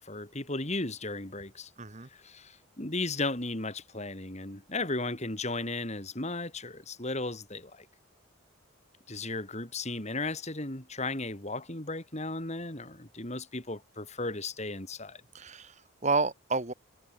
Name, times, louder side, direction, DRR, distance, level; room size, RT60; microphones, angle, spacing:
voice 1, 0.0-1.7 2.1-7.9 9.1-15.2, left 2 dB, 35° left, 3.6 m, -35 dB
voice 2, 1.8-2.1 15.3-16.7, right 3 dB, 35° right, 2.1 m, -30 dB
head